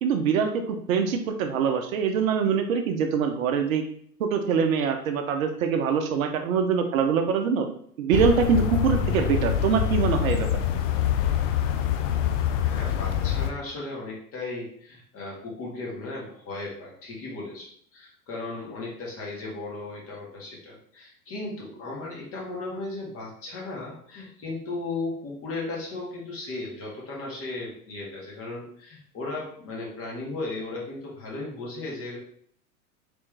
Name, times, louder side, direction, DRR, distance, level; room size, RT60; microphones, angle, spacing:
voice 1, 0.0-3.8 4.2-7.7 8.0-10.5, right 6 dB, 60° right, 5 dB, 0.6 m, -24 dB
sound 1, 8.1-13.5, left 9 dB, 55° left, 0.5 m, -25 dB
voice 2, 12.4-17.7 17.9-32.2, left 2 dB, 30° left, -4 dB, 1.6 m, -36 dB
3.4 x 3.1 x 3.3 m, 0.62 s
figure-of-eight pair, 95°, 47 cm